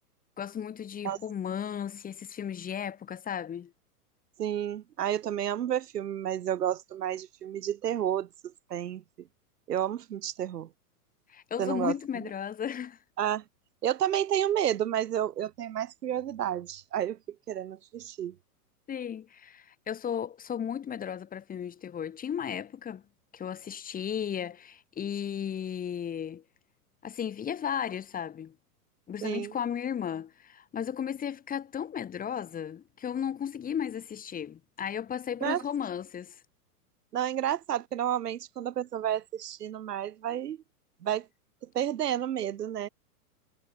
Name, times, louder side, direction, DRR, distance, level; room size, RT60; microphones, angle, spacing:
voice 1, 0.4-3.7 11.3-13.0 18.9-23.0 23.3-26.4 27.0-28.5 29.1-36.4, left 8 dB, 20° left, 1.8 m, -35 dB
voice 2, 4.4-8.3 8.7-9.3 9.7-10.7 11.6-11.9 13.2-13.4 13.8-18.3 29.2-29.5 35.4-35.6 37.1-40.6 41.0-41.3 41.6-42.9, right 10 dB, 85° right, 1.5 m, -31 dB
hypercardioid pair, 125°, 46 cm